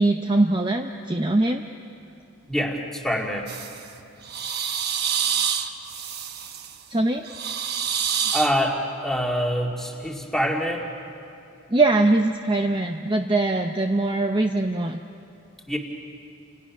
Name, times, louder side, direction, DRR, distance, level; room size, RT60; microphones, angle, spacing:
voice 1, 0.0-1.6 6.9-7.2 11.7-15.0, right 2 dB, 20° right, 4 dB, 0.7 m, -22 dB
voice 2, 2.4-3.5 8.3-10.9 15.7-15.8, equal, ahead, 0 dB, 2.2 m, -25 dB
sound 1, 3.5-3.8 4.2-6.8 7.2-8.5, right 7 dB, 50° right, 1.2 m, -27 dB
29.5 x 27.5 x 6.1 m, 2.7 s
head